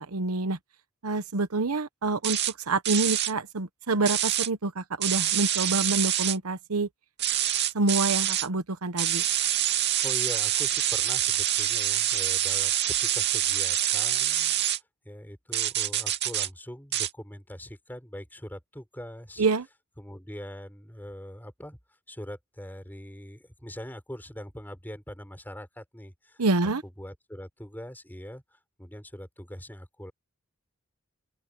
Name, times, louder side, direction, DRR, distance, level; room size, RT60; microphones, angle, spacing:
voice 1, 0.1-0.6 1.0-2.4 2.7-6.9 7.7-9.2 19.4-19.7 26.4-26.8, right 3 dB, 90° right, 1.0 m, -27 dB
sound 1, 2.2-2.5 2.8-3.3 4.1-4.5 5.0-6.4 7.2-8.5 9.0-14.8 15.5-16.5 16.9-17.1, right 11 dB, 50° right, 2.5 m, -26 dB
voice 2, 10.0-14.5 15.0-19.4 20.0-21.8 22.1-26.4 27.0-30.1, equal, 10° left, 6.5 m, -42 dB
open air
head